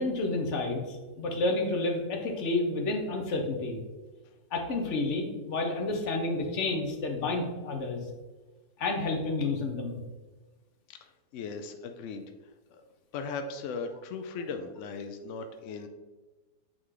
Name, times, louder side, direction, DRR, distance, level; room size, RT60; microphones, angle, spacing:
voice 1, 0.0-3.8 4.5-8.0 8.8-10.0, left 2 dB, 50° left, 3 dB, 1.1 m, -30 dB
voice 2, 11.0-12.2 12.7-12.8 13.1-15.9, left 4 dB, 80° left, 6 dB, 0.6 m, -38 dB
8.6 x 3.2 x 3.7 m, 1.2 s
omnidirectional pair, 1.8 m